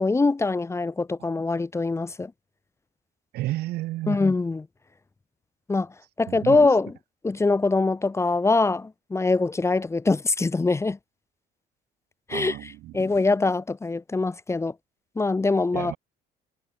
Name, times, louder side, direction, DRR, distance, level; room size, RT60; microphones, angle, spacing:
voice 1, 0.0-2.3 4.1-4.7 5.7-5.9 6.2-6.9 7.2-11.0 12.3-14.7 15.2-15.9, left 3 dB, 15° left, 0.9 m, -23 dB
voice 2, 3.3-4.2 6.3-6.7 12.3-12.9 15.7-16.0, right 16 dB, 75° right, 0.9 m, -31 dB
cardioid pair, 110°, 17 cm